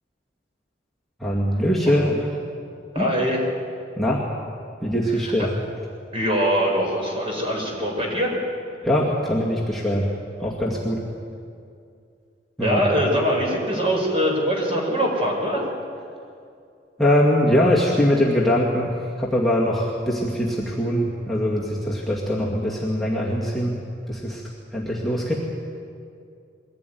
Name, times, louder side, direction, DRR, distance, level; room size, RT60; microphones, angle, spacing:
voice 1, 1.2-2.3 3.0-3.1 4.0-4.2 4.8-5.5 8.8-10.1 10.4-11.0 12.6-12.8 17.0-18.9 19.2-23.7 24.1-24.4 24.7-25.3, equal, ahead, -5 dB, 2.1 m, -22 dB
voice 2, 2.9-3.5 5.2-5.5 6.1-8.3 12.6-15.6, equal, 35° right, -1 dB, 5.2 m, -23 dB
22.5 x 16.0 x 9.4 m, 2.4 s
head